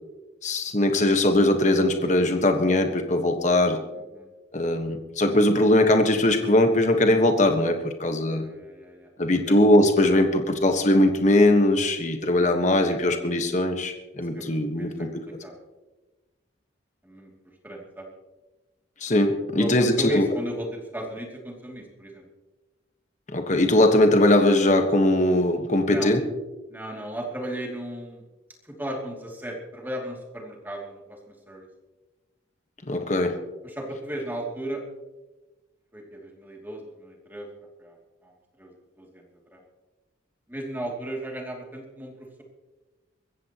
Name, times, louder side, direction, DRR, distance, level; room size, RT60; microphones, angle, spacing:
voice 1, 0.4-3.8 4.5-8.4 9.2-15.1 19.0-20.3 23.3-26.2 32.9-33.3, left 1 dB, 40° left, 5 dB, 1.4 m, -20 dB
voice 2, 3.9-4.3 8.3-9.1 9.5-9.6 12.9-13.0 14.3-15.5 17.0-17.3 17.6-18.1 19.6-22.3 25.9-26.1 26.7-28.2 28.6-31.7 33.6-34.8 35.9-37.5 37.8-38.0 38.2-38.3 38.6-39.2 39.5-39.6 40.5-42.4, right 1 dB, 10° right, -1 dB, 2.7 m, -36 dB
23.5 x 15.0 x 3.0 m, 1.2 s
head